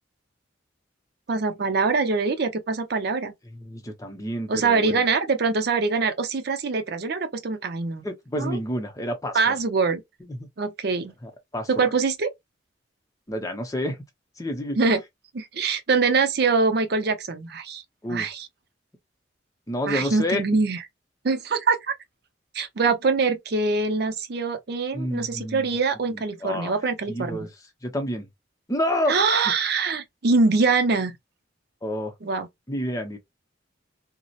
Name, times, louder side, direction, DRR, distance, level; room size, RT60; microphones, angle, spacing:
voice 1, 1.3-3.3 4.5-8.0 8.4-8.6 9.3-10.0 10.6-11.1 11.7-12.3 14.8-15.0 15.3-17.8 18.1-18.5 19.9-20.8 21.2-21.9 22.5-27.5 29.1-31.2 32.2-32.5, right 4 dB, 55° right, 0.5 m, -24 dB
voice 2, 3.5-5.1 8.0-9.6 10.3-10.5 11.2-11.9 13.3-14.0 14.4-14.8 18.0-18.3 19.7-20.4 24.9-25.7 26.1-26.8 27.1-27.5 27.8-28.3 28.7-29.2 31.8-32.1 32.7-33.2, equal, 20° left, 0.6 m, -29 dB
2.7 x 2.1 x 2.3 m
head